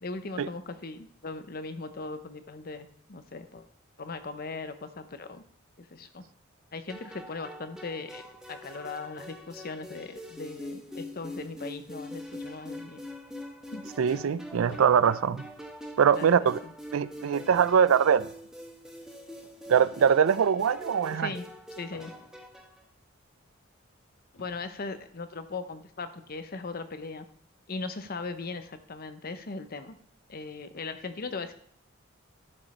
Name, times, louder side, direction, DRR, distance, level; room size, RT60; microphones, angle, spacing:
voice 1, 0.0-3.7 4.0-5.4 5.8-6.2 6.7-13.0 13.7-13.8 15.3-15.4 16.1-16.7 21.2-21.5 21.8-22.1 24.4-27.3 27.7-30.0 30.3-31.5, left 3 dB, 45° left, 10 dB, 0.8 m, -39 dB
sound 1, 6.9-22.8, left 1 dB, 5° right, 1.0 m, -44 dB
sound 2, 13.5-16.2 16.6-16.8 17.1-20.7 21.9-22.7 23.5-23.6 24.3-24.9, left 2 dB, 80° left, 1.6 m, -53 dB
voice 2, 14.0-15.4 16.0-16.6 16.9-18.3 19.7-21.3, right 7 dB, 85° right, 17 dB, 0.4 m, -22 dB
12.0 x 5.3 x 4.2 m, 0.64 s
head